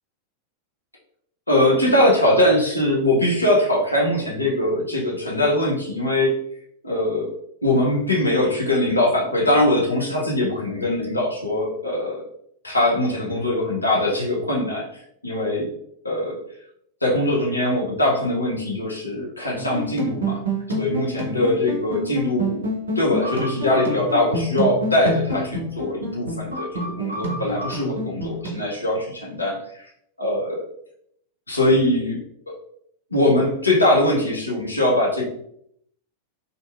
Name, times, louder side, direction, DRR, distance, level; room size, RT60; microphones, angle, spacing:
voice 1, 1.5-6.4 6.8-7.3 7.6-12.2 12.6-15.7 16.0-16.4 17.0-20.4 20.8-22.6 23.0-29.9 30.2-30.6 31.5-32.2 33.1-35.3, left 1 dB, 80° left, -2 dB, 0.6 m, -21 dB
sound 1, 19.6-28.5, right 1 dB, 70° right, 0.5 m, -28 dB
2.7 x 2.6 x 2.3 m, 0.71 s
figure-of-eight pair, 90°, 0 cm